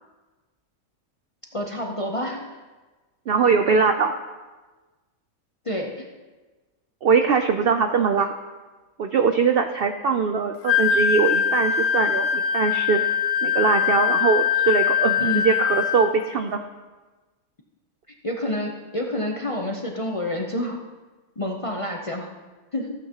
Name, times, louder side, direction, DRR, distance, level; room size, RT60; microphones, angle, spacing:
voice 1, 1.5-2.4 5.6-6.0 15.2-15.5 18.2-20.8 21.4-22.3 22.7-22.9, left 1 dB, 35° left, 0 dB, 0.6 m, -28 dB
voice 2, 3.3-4.1 7.0-8.3 9.0-13.0 13.4-16.6, right 5 dB, 70° right, 7 dB, 0.5 m, -21 dB
Wind instrument woodwind instrument, 10.7-16.1, left 8 dB, 70° left, 1.0 m, -22 dB
15.0 x 8.1 x 2.9 m, 1.3 s
omnidirectional pair, 1.5 m